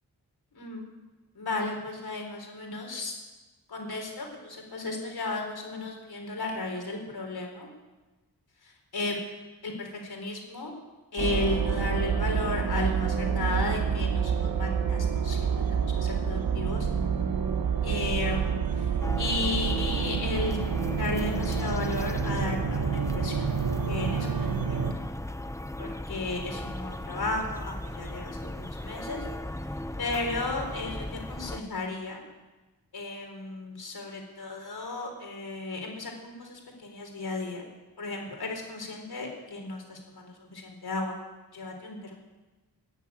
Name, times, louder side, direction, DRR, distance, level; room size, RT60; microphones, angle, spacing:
voice 1, 0.5-0.9 1.4-3.1 3.7-7.7 8.6-9.2 9.6-10.7 11.1-16.9 17.8-18.9 19.2-20.6 21.0-23.5 23.9-25.0 25.8-29.3 30.0-32.2 32.9-37.6 38.0-41.1 41.5-42.2, left 2 dB, 75° left, 2 dB, 4.1 m, -34 dB
sound 1, 11.2-24.9, right 6 dB, 60° right, 1.3 m, -28 dB
sound 2, 19.0-31.6, left 1 dB, 10° left, 0.7 m, -37 dB
18.0 x 7.5 x 9.6 m, 1.2 s
wide cardioid pair, 75°, 38 cm